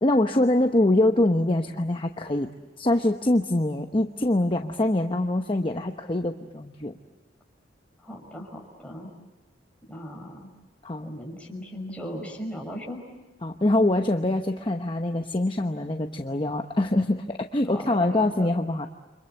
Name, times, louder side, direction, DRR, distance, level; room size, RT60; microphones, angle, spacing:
voice 1, 0.0-2.5 2.8-6.9 10.8-11.1 13.4-18.9, left 1 dB, 30° left, 5 dB, 0.9 m, -24 dB
voice 2, 8.0-9.1 9.9-10.5 11.0-13.1 17.7-18.5, equal, 5° left, 0 dB, 5.6 m, -37 dB
29.5 x 25.5 x 7.9 m, 1.2 s
head